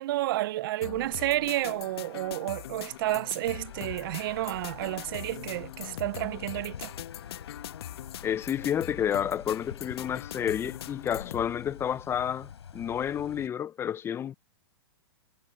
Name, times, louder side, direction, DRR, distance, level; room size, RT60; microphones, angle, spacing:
voice 1, 0.0-6.9, right 16 dB, 55° right, 0.5 m, -31 dB
sound 1, 0.8-11.5, left 12 dB, 65° left, 1.4 m, -42 dB
sound 2, 3.4-13.5, left 7 dB, 90° left, 5.1 m, -47 dB
voice 2, 8.2-14.3, left 9 dB, 15° left, 0.6 m, -30 dB
hypercardioid pair, 135°, 14 cm